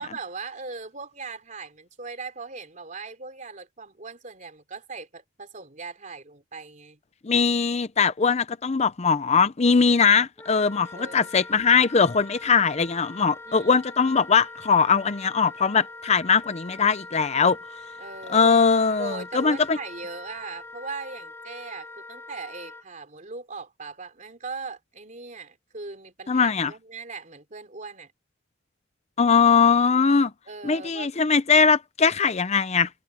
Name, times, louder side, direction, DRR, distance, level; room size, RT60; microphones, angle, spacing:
voice 1, 0.0-7.0 10.9-11.4 13.5-13.7 18.0-18.6 19.0-28.1 30.5-31.3, right 4 dB, 40° right, 3.5 m, -39 dB
voice 2, 7.2-17.6 18.3-19.8 26.3-26.7 29.2-30.3 30.6-32.9, left 5 dB, 35° left, 0.5 m, -21 dB
Wind instrument woodwind instrument, 10.4-22.8, left 2 dB, 15° left, 5.6 m, -43 dB
head